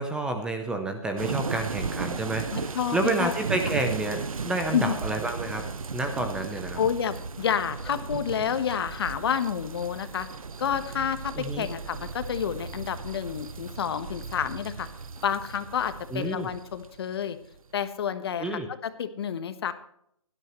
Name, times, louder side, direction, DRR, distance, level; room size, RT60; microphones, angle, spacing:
voice 1, 0.0-5.7 5.9-6.8 11.4-11.7 16.1-16.5 18.4-18.7, right 2 dB, 5° right, 6 dB, 0.7 m, -29 dB
sound 1, 1.2-17.6, right 5 dB, 80° right, 1.0 m, -36 dB
voice 2, 2.5-3.3 4.7-5.0 6.8-10.3 10.6-14.9 15.2-17.4 17.7-19.7, left 8 dB, 45° left, 11 dB, 1.4 m, -29 dB
17.0 x 12.5 x 3.1 m, 0.71 s
hypercardioid pair, 150°, 17 cm